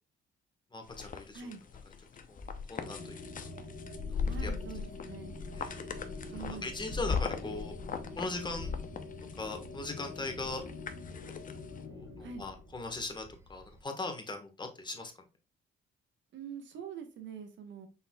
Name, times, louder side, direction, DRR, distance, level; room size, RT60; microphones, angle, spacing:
voice 1, 0.7-1.5 2.3-3.2 4.1-4.5 5.5-5.9 6.3-7.7 8.1-8.7 9.4-10.6 11.8-15.1, left 2 dB, 25° left, 4 dB, 1.3 m, -40 dB
sound 1, 0.9-11.8, left 5 dB, 40° left, 0.7 m, -39 dB
sound 2, 2.8-12.8, left 3 dB, 85° left, 2.1 m, -46 dB
voice 2, 4.3-5.4 6.3-6.7 12.2-12.4 16.3-17.9, right 6 dB, 70° right, 6 dB, 1.2 m, -44 dB
sound 3, 5.2-13.8, right 3 dB, 15° right, 0.5 m, -55 dB
5.5 x 4.1 x 2.3 m, 0.30 s
cardioid pair, 90°, 20 cm